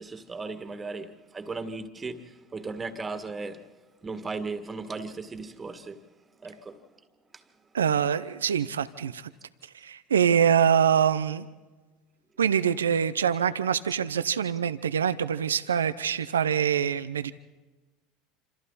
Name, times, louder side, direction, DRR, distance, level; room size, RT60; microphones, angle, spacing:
voice 1, 0.0-3.7 4.0-6.1 6.4-6.9 7.3-7.4, right 3 dB, 25° right, 2.0 m, -37 dB
voice 2, 7.7-9.3 9.7-11.5 12.4-17.3, right 8 dB, 85° right, 0.7 m, -24 dB
27.0 x 27.0 x 4.2 m
hypercardioid pair, 80°, 0 cm